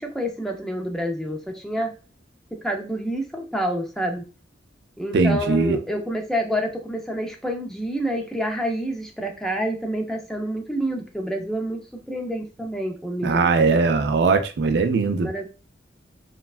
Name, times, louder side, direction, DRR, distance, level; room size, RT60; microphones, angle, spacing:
voice 1, 0.0-1.9 2.6-4.2 5.0-11.8 12.1-13.7 15.2-15.5, equal, 5° left, 0.4 m, -28 dB
voice 2, 5.1-5.8 13.2-15.3, right 4 dB, 65° right, 0.4 m, -20 dB
3.1 x 2.2 x 2.4 m
head